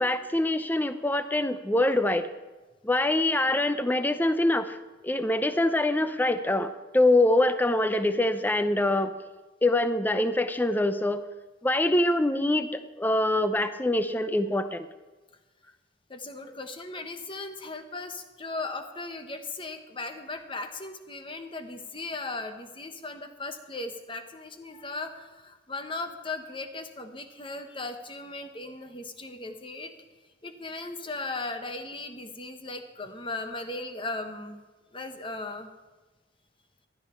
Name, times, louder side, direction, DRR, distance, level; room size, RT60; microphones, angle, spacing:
voice 1, 0.0-2.3 2.8-4.8 5.0-9.1 9.6-11.2 11.6-14.9, left 1 dB, 10° left, 11 dB, 0.5 m, -24 dB
voice 2, 16.1-29.9 30.4-34.6 34.9-35.7, left 3 dB, 25° left, 7 dB, 1.0 m, -37 dB
15.5 x 11.5 x 4.4 m, 1.2 s
head